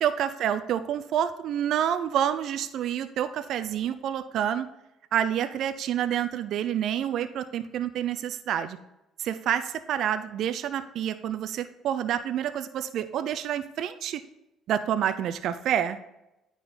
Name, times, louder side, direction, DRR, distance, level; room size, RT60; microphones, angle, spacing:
voice 1, 0.0-4.7 5.1-8.8 9.2-14.2 14.7-16.0, right 10 dB, 65° right, 10 dB, 0.4 m, -28 dB
9.4 x 3.8 x 4.1 m, 0.92 s
supercardioid pair, 70°, 0 cm